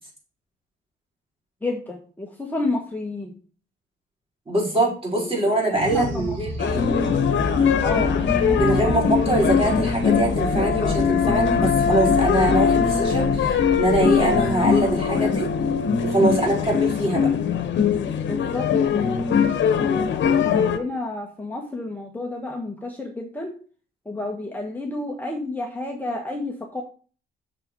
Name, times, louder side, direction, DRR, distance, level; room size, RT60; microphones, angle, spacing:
voice 1, 1.6-3.3 5.1-6.4 6.8-7.2 7.8-9.8 18.3-19.1 20.2-23.5 24.0-26.8, left 2 dB, 10° left, 0 dB, 1.6 m, -31 dB
voice 2, 4.5-6.8 8.5-15.5 16.0-17.3, right 1 dB, 30° right, -3 dB, 5.2 m, -23 dB
sound 1, 5.7-16.4, equal, 75° right, 4.7 m, -32 dB
sound 2, 6.6-20.8, left 6 dB, 65° left, 1.3 m, -21 dB
6.9 x 6.8 x 4.8 m, 0.40 s
cardioid pair, 90°, 20 cm